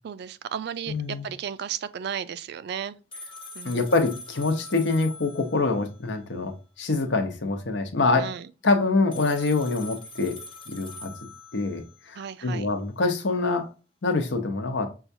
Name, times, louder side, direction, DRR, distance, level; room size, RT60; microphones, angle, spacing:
voice 1, 0.0-3.0 3.5-3.8 8.1-8.5 12.2-12.7, right 8 dB, 60° right, 0.3 m, -34 dB
voice 2, 0.9-1.3 3.6-8.3 8.6-11.1 11.5-13.7 14.0-14.9, left 3 dB, 75° left, 0.8 m, -25 dB
sound 1, 3.1-6.0 9.1-12.1, left 2 dB, 30° left, 0.7 m, -43 dB
5.6 x 2.3 x 2.6 m
head